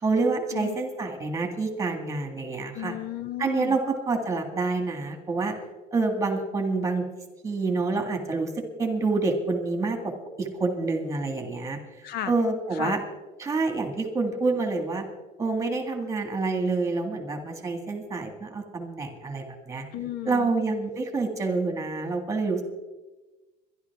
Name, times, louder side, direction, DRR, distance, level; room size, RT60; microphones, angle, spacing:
voice 1, 0.0-3.0 3.4-5.6 5.9-7.0 7.4-10.1 10.4-11.8 12.3-13.0 13.4-15.0 15.4-19.8 20.3-22.6, right 3 dB, 15° right, 5 dB, 1.8 m, -27 dB
voice 2, 2.7-3.8 12.0-12.3 12.7-13.0 19.9-20.5, left 12 dB, 55° left, 14 dB, 0.6 m, -34 dB
22.5 x 11.5 x 3.5 m, 1.2 s
cardioid pair, 165°, 19 cm